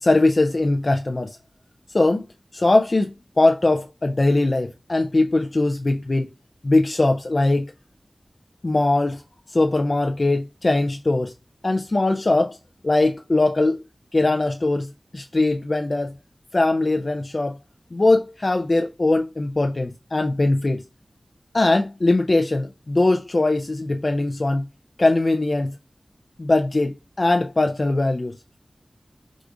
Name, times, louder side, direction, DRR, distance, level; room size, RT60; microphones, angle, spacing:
voice 1, 0.0-1.4 1.9-2.3 2.5-3.1 3.4-6.3 6.6-7.7 8.6-9.2 9.5-11.3 11.6-12.6 12.8-13.8 14.1-14.9 15.1-16.1 16.5-17.6 17.9-20.8 21.5-24.7 25.0-25.7 26.4-28.4, left 2 dB, 45° left, 0.4 m, -20 dB
4.8 x 2.4 x 3.6 m
wide cardioid pair, 70°, 0 cm